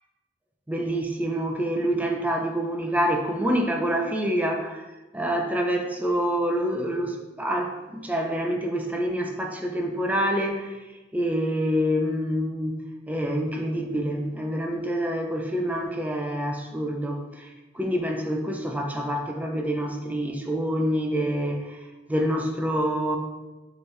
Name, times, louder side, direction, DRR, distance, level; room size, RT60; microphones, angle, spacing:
voice 1, 0.7-4.8 5.1-10.8 11.1-12.8 13.1-21.8 22.1-23.2, equal, 10° right, 2 dB, 0.4 m, -27 dB
4.4 x 3.1 x 3.2 m, 1.1 s
head